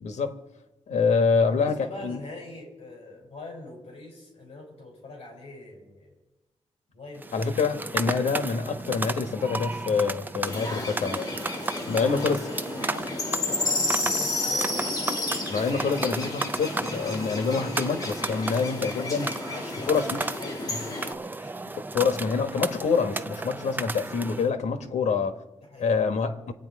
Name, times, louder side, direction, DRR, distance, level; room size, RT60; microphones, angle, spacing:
voice 1, 0.0-0.4 0.9-2.2 7.3-11.2 11.9-12.4 15.5-19.3 19.9-20.0 20.7-20.8 21.9-25.4 25.8-26.5, left 5 dB, 80° left, 1.4 m, -26 dB
voice 2, 1.3-6.2 6.9-7.3 10.1-10.4 11.8-12.3 12.7-15.0 19.3-21.7 23.4-23.8 24.8-25.2 25.6-25.9, left 2 dB, 55° left, 6.5 m, -44 dB
sound 1, 7.2-24.5, right 3 dB, 15° right, 0.5 m, -34 dB
sound 2, 10.4-21.1, left 2 dB, 30° left, 2.6 m, -31 dB
27.5 x 9.2 x 4.8 m
wide cardioid pair, 170°, 12 cm